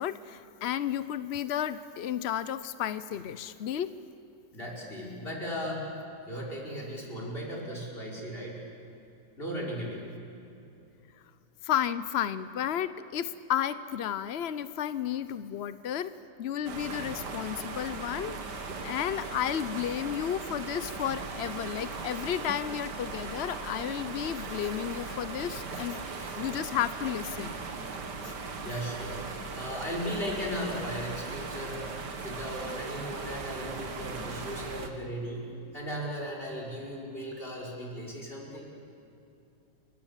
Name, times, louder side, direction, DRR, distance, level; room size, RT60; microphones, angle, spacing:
voice 1, 0.0-3.9 11.6-27.5 28.2-28.3, left 10 dB, 70° left, 14 dB, 0.6 m, -32 dB
voice 2, 4.5-5.9 6.3-8.6 9.4-10.1 28.6-29.3 29.6-31.9 32.2-38.6, equal, 30° left, -3 dB, 5.7 m, -37 dB
sound 1, 16.7-34.9, right 4 dB, 65° right, 2.4 m, -38 dB
29.5 x 24.5 x 7.4 m, 2.8 s
omnidirectional pair, 2.0 m